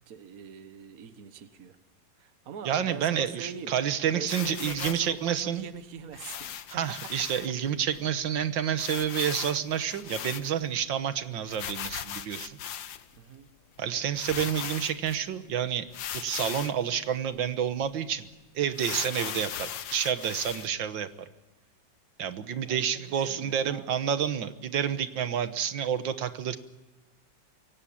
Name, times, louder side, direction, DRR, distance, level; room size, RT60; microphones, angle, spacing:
voice 1, 0.1-1.8 2.2-3.7 4.1-7.0 13.2-13.5 22.6-23.9, right 7 dB, 55° right, 11 dB, 1.6 m, -43 dB
voice 2, 2.7-5.7 6.7-12.6 13.8-15.9 16.1-18.3 18.6-21.1 22.2-26.6, right 9 dB, 90° right, 11 dB, 1.9 m, -29 dB
sound 1, 4.3-5.1 6.1-7.5 7.9-8.0 8.2-8.3 8.8-10.8 11.5-13.2 13.8-13.9 14.1-15.2 15.9-16.8 17.3-17.4 17.8-17.9 18.7-20.7, left 10 dB, 85° left, 1.7 m, -38 dB
24.0 x 17.5 x 8.6 m, 1.1 s
omnidirectional pair, 2.0 m